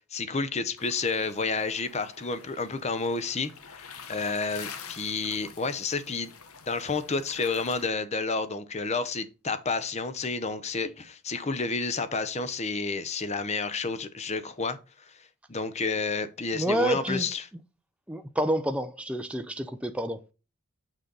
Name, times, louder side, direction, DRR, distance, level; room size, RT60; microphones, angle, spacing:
voice 1, 0.1-6.3 6.7-14.8 15.1-15.2 15.5-17.5, left 4 dB, 30° left, 0.7 m, -30 dB
sound 1, 0.8-7.9, left 6 dB, 85° left, 1.0 m, -46 dB
voice 2, 16.5-17.3 18.1-20.2, right 1 dB, 5° right, 0.4 m, -28 dB
6.7 x 6.2 x 3.9 m
head